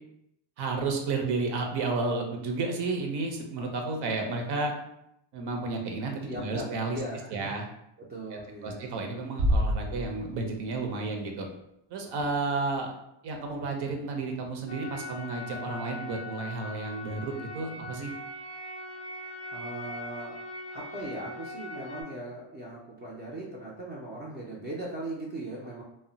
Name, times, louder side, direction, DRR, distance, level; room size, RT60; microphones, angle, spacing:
voice 1, 0.6-4.7 5.3-7.0 7.3-7.7 8.3-11.5 11.9-12.9 13.2-18.1, right 3 dB, 60° right, 2 dB, 0.6 m, -32 dB
voice 2, 6.2-6.7 6.9-7.5 8.0-8.8 19.5-20.3 20.7-25.8, right 1 dB, 25° right, -4 dB, 0.3 m, -39 dB
sound 1, 9.4-10.8, equal, 80° right, 0.9 m, -28 dB
sound 2, 14.7-22.0, left 1 dB, 40° left, 0.4 m, -41 dB
2.1 x 2.1 x 3.8 m, 0.80 s
cardioid pair, 140°, 47 cm